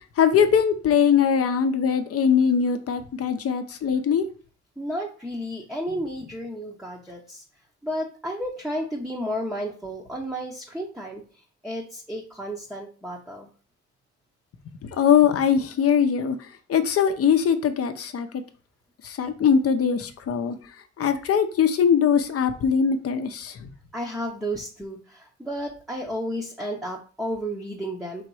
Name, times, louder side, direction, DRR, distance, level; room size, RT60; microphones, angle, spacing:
voice 1, 0.2-4.2 15.0-18.3 19.0-20.6 21.0-23.7, left 7 dB, 50° left, 9 dB, 0.7 m, -21 dB
voice 2, 4.8-7.4 7.8-13.5 23.9-28.3, equal, ahead, -1 dB, 0.7 m, -32 dB
3.9 x 2.9 x 4.7 m, 0.39 s
cardioid pair, 90°, 30 cm